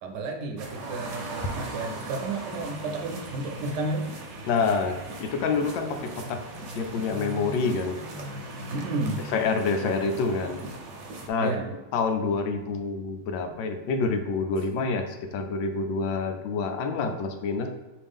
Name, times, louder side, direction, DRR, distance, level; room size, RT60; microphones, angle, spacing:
voice 1, 0.0-4.1 8.7-9.2 11.4-11.8, right 2 dB, 70° right, 3 dB, 1.1 m, -32 dB
sound 1, 0.6-11.3, right 2 dB, 55° right, 0.8 m, -39 dB
voice 2, 4.5-6.4 6.7-8.0 9.3-10.6 11.3-11.5 11.9-17.7, left 4 dB, 90° left, 6 dB, 1.4 m, -27 dB
4.4 x 3.2 x 3.5 m, 1.2 s
omnidirectional pair, 2.0 m